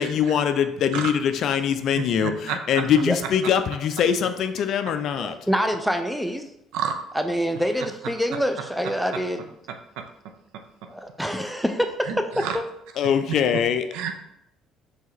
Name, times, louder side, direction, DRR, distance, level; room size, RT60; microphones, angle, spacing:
voice 1, 0.0-5.3 13.0-13.9, left 8 dB, 55° left, 9 dB, 0.3 m, -23 dB
voice 2, 2.2-2.6 6.7-7.0 12.1-12.6 13.9-14.1, right 8 dB, 70° right, 6 dB, 0.4 m, -28 dB
voice 3, 2.8-3.2 5.2-6.4 7.1-9.5 10.9-12.6, equal, ahead, 7 dB, 0.5 m, -26 dB
4.5 x 3.3 x 3.1 m, 0.80 s
hypercardioid pair, 55°, 0 cm